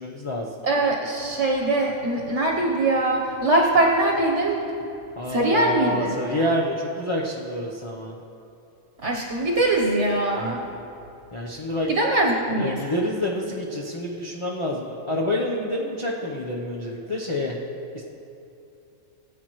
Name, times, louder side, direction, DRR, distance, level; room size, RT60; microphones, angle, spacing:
voice 1, 0.0-0.5 5.2-8.2 11.3-11.9 12.6-17.6 17.9-18.0, left 1 dB, 25° left, -3 dB, 0.8 m, -28 dB
voice 2, 0.6-4.6 5.3-6.1 9.0-10.6 11.9-12.8, right 2 dB, 60° right, -2 dB, 1.4 m, -22 dB
20.5 x 8.1 x 3.1 m, 2.7 s
omnidirectional pair, 1.4 m